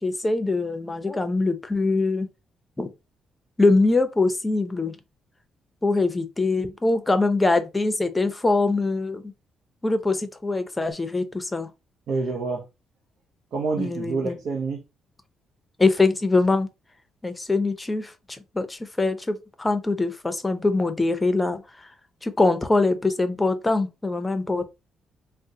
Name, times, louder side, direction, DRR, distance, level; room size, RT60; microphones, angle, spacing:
voice 1, 0.0-2.3 2.8-2.9 3.6-5.0 5.8-9.3 9.8-11.7 13.8-14.3 15.8-16.7 17.2-21.9 22.2-24.7, left 3 dB, 15° left, 0.6 m, -23 dB
voice 2, 12.1-12.7 13.5-14.8, right 4 dB, 70° right, 0.6 m, -27 dB
3.8 x 2.1 x 2.7 m
cardioid pair, 90°, 0 cm